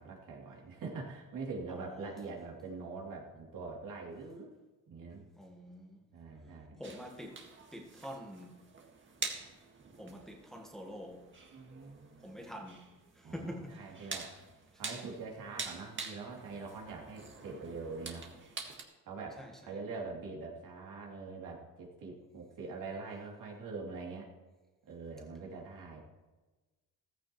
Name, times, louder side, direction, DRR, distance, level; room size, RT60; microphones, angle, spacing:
voice 1, 0.0-4.5 4.9-5.2 6.1-6.8 11.5-12.4 13.2-14.3 14.7-18.3 19.0-24.3 24.9-26.0, right 4 dB, 70° right, 3.2 m, -44 dB
voice 2, 1.7-2.3 5.4-6.1 6.8-8.7 10.0-11.4 12.2-14.1 19.4-19.8, equal, ahead, 1.5 m, -47 dB
sound 1, 6.8-18.8, right 4 dB, 35° right, 1.9 m, -46 dB
15.0 x 15.0 x 3.2 m
cardioid pair, 110°, 33 cm